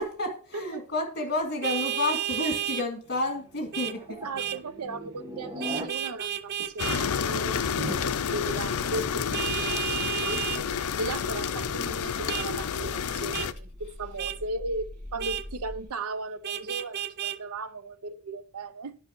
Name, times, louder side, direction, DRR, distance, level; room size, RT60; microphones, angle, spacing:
voice 1, 0.0-4.3, left 2 dB, 50° left, 2.3 m, -30 dB
Vehicle horn car horn honking, 1.6-2.9 3.7-4.0 4.4-4.6 5.6-7.0 9.3-10.6 12.3-12.5 13.3-13.5 14.2-14.4 15.2-15.4 16.4-17.4, right 11 dB, 50° right, 0.5 m, -32 dB
sound 1, 3.1-5.9 6.2-15.8, equal, 20° right, 1.3 m, -42 dB
voice 2, 4.2-10.4 11.0-19.0, right 2 dB, 80° right, 0.7 m, -37 dB
sound 2, 6.8-13.5, left 7 dB, 85° left, 0.5 m, -30 dB
10.0 x 5.5 x 4.5 m
head